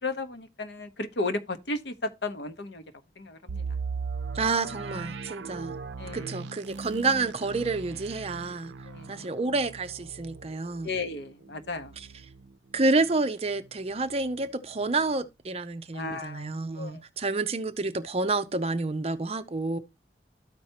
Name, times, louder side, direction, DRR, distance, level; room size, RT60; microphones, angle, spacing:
voice 1, 0.0-2.8 3.2-3.8 6.0-6.4 8.8-9.3 10.8-12.0 15.9-16.5 16.7-17.0, left 2 dB, 75° left, 0.9 m, -34 dB
sound 1, 3.5-13.2 13.6-13.7 14.2-14.4, right 4 dB, 90° right, 0.5 m, -39 dB
voice 2, 4.3-5.7 6.1-8.7 9.1-10.9 12.7-19.8, right 3 dB, 35° right, 0.6 m, -29 dB
13.0 x 4.5 x 2.8 m
head